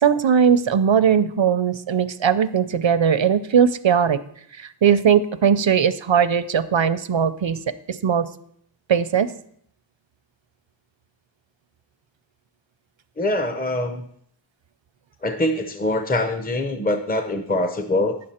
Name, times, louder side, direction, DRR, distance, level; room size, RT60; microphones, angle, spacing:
voice 1, 0.0-4.2 4.6-7.6 8.0-8.3 8.9-9.3, right 7 dB, 80° right, 13 dB, 0.6 m, -19 dB
voice 2, 13.2-14.0 15.2-18.2, left 1 dB, 20° left, 7 dB, 0.7 m, -23 dB
9.6 x 7.6 x 4.3 m, 0.67 s
wide cardioid pair, 40°, 45 cm